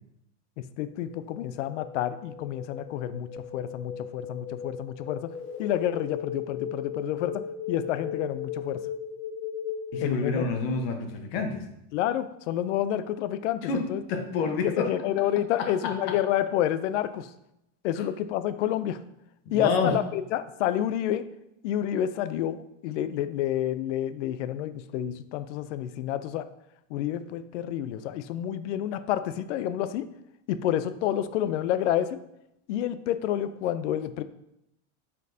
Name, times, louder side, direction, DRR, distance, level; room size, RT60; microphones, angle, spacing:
voice 1, 0.6-5.3 5.6-8.8 10.0-10.5 11.9-14.0 14.6-17.3 17.8-19.0 19.5-21.2 21.6-26.5 26.9-30.1 30.5-32.2 32.7-34.2, left 11 dB, 90° left, 13 dB, 0.6 m, -29 dB
sound 1, 0.9-10.8, left 7 dB, 35° left, 0.8 m, -37 dB
voice 2, 9.9-11.7 13.6-14.9 15.6-16.2 17.9-18.0 19.4-20.0, left 4 dB, 60° left, 4 dB, 1.1 m, -29 dB
8.2 x 4.5 x 2.7 m, 0.83 s
supercardioid pair, 165°, 35 cm